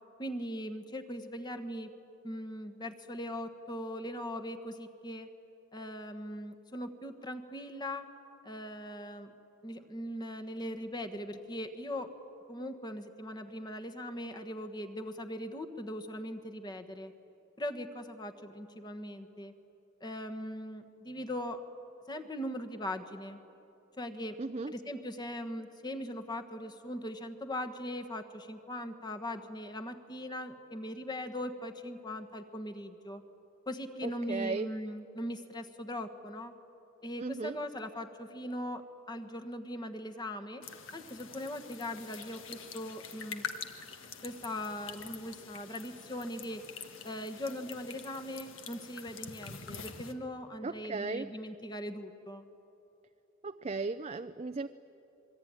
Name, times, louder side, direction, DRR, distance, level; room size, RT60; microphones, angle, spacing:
voice 1, 0.2-1.9 2.2-5.3 5.7-8.1 8.4-9.3 9.6-12.1 12.5-17.1 17.6-19.5 20.0-21.6 22.1-23.4 24.0-24.4 24.7-33.2 33.7-36.5 37.0-40.6 40.9-43.5 44.2-46.6 47.0-52.4, left 1 dB, 20° left, 7 dB, 1.4 m, -40 dB
voice 2, 24.4-24.7 34.0-34.7 37.2-37.6 50.6-51.3 53.4-54.7, right 3 dB, 30° right, 8 dB, 0.5 m, -36 dB
sound 1, 40.6-50.1, left 6 dB, 70° left, 1.6 m, -46 dB
26.0 x 23.0 x 9.7 m, 2.9 s
head